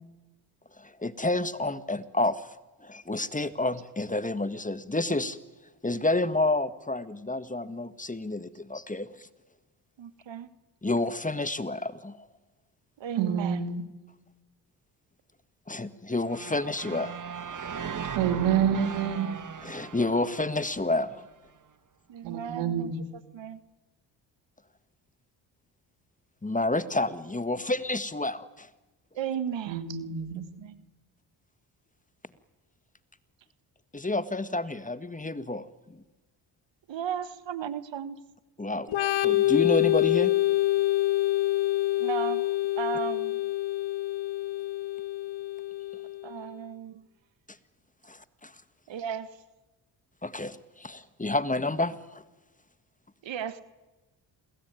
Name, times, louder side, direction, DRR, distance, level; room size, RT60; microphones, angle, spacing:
voice 1, 0.8-2.5 2.8-5.4 5.8-9.3 10.8-12.2 15.7-17.1 19.6-21.3 26.4-28.7 33.9-36.0 38.6-38.9 39.2-40.3 48.0-48.5 50.2-52.2, left 2 dB, 15° left, 13 dB, 1.8 m, -29 dB
voice 2, 10.0-10.5 13.0-13.7 22.1-22.9 23.3-23.6 29.1-30.0 30.6-30.8 36.9-38.2 42.0-42.4 42.8-43.4 46.2-47.0 48.9-49.3 53.2-53.6, right 8 dB, 65° right, 13 dB, 1.6 m, -35 dB
voice 3, 13.2-13.8 18.1-19.3 22.2-23.1 29.7-30.5, right 8 dB, 85° right, 8 dB, 3.0 m, -28 dB
sound 1, 16.3-21.3, right 7 dB, 40° right, 1.8 m, -38 dB
Organ, 38.9-46.4, left 16 dB, 70° left, 1.8 m, -26 dB
28.5 x 21.5 x 9.6 m, 1.1 s
supercardioid pair, 55°, 48 cm